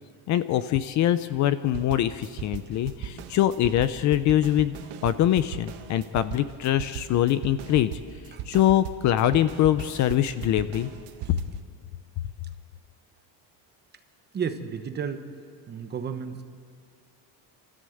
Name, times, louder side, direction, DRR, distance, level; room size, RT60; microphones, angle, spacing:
voice 1, 0.3-4.8 5.0-7.9 8.5-10.9, left 12 dB, 45° left, 13 dB, 0.6 m, -23 dB
sound 1, 1.7-11.6, right 11 dB, 70° right, 1.4 m, -38 dB
voice 2, 14.3-15.2 15.7-16.4, right 7 dB, 25° right, 8 dB, 1.0 m, -32 dB
29.0 x 14.0 x 7.9 m, 2.1 s
cardioid pair, 180°, 42 cm